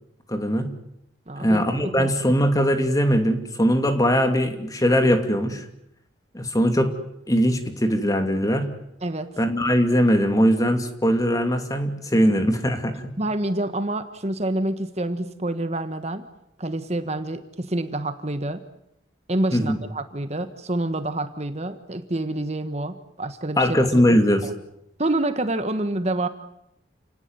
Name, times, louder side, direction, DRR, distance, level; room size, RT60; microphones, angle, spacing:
voice 1, 0.3-0.7 1.4-5.7 6.3-6.9 7.3-8.7 9.4-13.1 19.5-19.8 23.6-24.5, equal, 20° left, 6 dB, 2.7 m, -21 dB
voice 2, 1.3-1.6 1.9-2.1 9.0-9.3 13.2-16.2 16.6-18.6 19.3-24.0 24.4-24.5 25.0-26.3, right 1 dB, 35° right, 9 dB, 1.4 m, -27 dB
29.5 x 18.5 x 9.8 m, 0.81 s
head